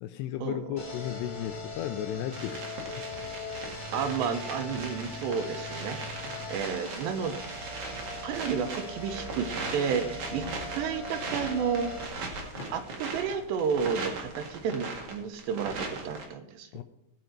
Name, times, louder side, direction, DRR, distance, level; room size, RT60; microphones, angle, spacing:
voice 1, 0.0-2.7 3.0-3.1 10.3-10.6 16.7-16.8, left 12 dB, 85° left, 10 dB, 2.5 m, -35 dB
sound 1, 0.8-12.1, left 2 dB, 20° left, 1.9 m, -40 dB
sound 2, 2.3-16.3, right 3 dB, 50° right, 2.7 m, -39 dB
voice 2, 3.9-7.4 8.2-10.5 10.7-11.9 12.7-16.8, right 6 dB, 75° right, 8 dB, 3.0 m, -31 dB
sound 3, 12.5-15.2, left 1 dB, 50° left, 1.5 m, -50 dB
18.0 x 6.2 x 4.5 m, 0.88 s
omnidirectional pair, 5.2 m